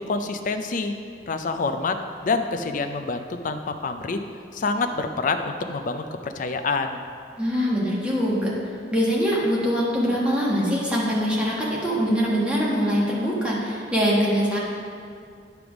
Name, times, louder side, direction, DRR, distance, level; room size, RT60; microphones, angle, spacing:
voice 1, 0.1-0.9 1.3-4.2 4.5-7.0, left 3 dB, 45° left, 7 dB, 0.4 m, -27 dB
voice 2, 7.4-8.5 8.9-14.6, equal, 5° right, -6 dB, 1.3 m, -23 dB
9.4 x 3.4 x 6.0 m, 2.3 s
head